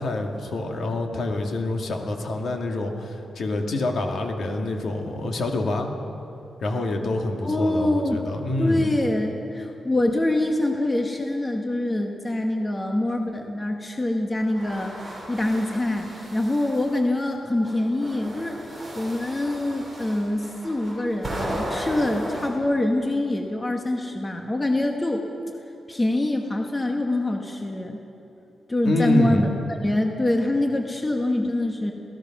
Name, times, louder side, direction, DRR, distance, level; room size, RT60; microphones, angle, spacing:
voice 1, 0.0-5.9 6.6-8.9 28.8-29.5, left 2 dB, 55° left, 3 dB, 2.2 m, -26 dB
voice 2, 7.4-8.2 8.6-25.2 25.9-28.0 28.7-29.5 29.8-31.9, left 1 dB, 15° left, 2 dB, 1.2 m, -25 dB
sound 1, 14.4-17.0 17.6-22.5, right 1 dB, ahead, 5.6 m, -35 dB
27.5 x 17.5 x 6.0 m, 2.9 s
wide cardioid pair, 175°, 0 cm